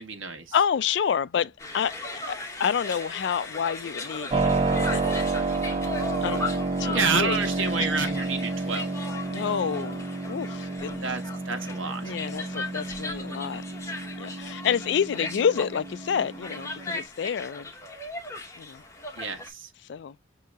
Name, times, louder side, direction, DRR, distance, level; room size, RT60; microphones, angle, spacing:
voice 1, 0.0-0.6 6.9-8.9 11.0-12.0 19.2-19.7, right 4 dB, 85° right, 1.2 m, -29 dB
voice 2, 0.5-2.0 2.3-5.1 6.2-7.4 7.8-7.9 9.3-11.1 12.0-13.6 14.2-17.7 18.6-18.8 19.9-20.1, left 7 dB, 60° left, 0.3 m, -29 dB
sound 1, 1.6-19.5, left 2 dB, 15° left, 0.9 m, -37 dB
Keyboard (musical), 4.3-17.0, right 3 dB, 25° right, 0.3 m, -30 dB
6.4 x 2.8 x 2.3 m
head